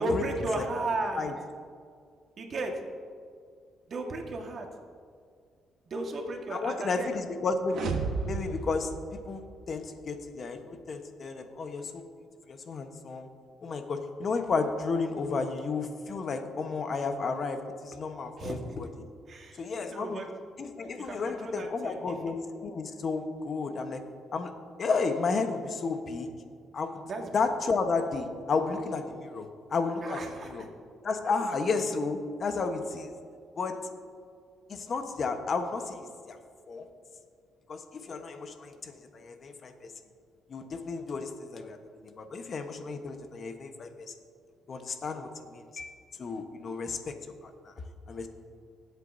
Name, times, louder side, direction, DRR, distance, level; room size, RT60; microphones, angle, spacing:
voice 1, 0.0-1.3 2.4-2.7 3.9-4.7 5.9-7.1 18.4-18.5 19.3-19.6 19.9-20.3 21.0-22.2 27.0-27.3 30.0-30.7, right 2 dB, 50° right, 2 dB, 1.6 m, -34 dB
voice 2, 6.5-8.0 8.3-8.9 9.3-12.0 12.5-13.3 13.6-19.1 19.6-20.2 20.6-24.0 24.3-24.5 24.8-26.3 26.7-27.0 27.3-30.7 31.0-33.1 33.6-33.8 34.7-36.4 36.7-36.9 37.7-39.9 40.5-44.1 44.7-45.9 46.2-47.2 47.4-47.7 48.1-48.3, left 4 dB, 50° left, 6 dB, 1.1 m, -32 dB
sound 1, 7.7-9.8, right 5 dB, 70° right, 1.0 m, -34 dB
19.5 x 8.2 x 2.7 m, 2.1 s
cardioid pair, 90°, 0 cm